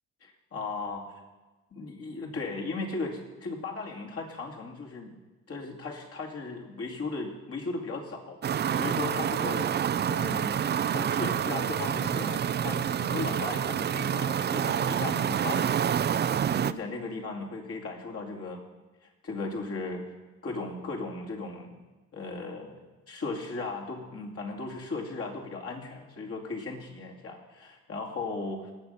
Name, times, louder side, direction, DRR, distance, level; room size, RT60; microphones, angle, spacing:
voice 1, 0.2-1.2 1.7-5.2 5.5-8.4 8.7-18.6 19.2-20.1 20.4-21.7 22.1-28.7, left 3 dB, 50° left, 0 dB, 2.5 m, -37 dB
sound 1, 8.4-16.7, right 8 dB, 35° right, 0.4 m, -28 dB
18.0 x 6.6 x 5.7 m, 1.2 s
cardioid pair, 90°, 30 cm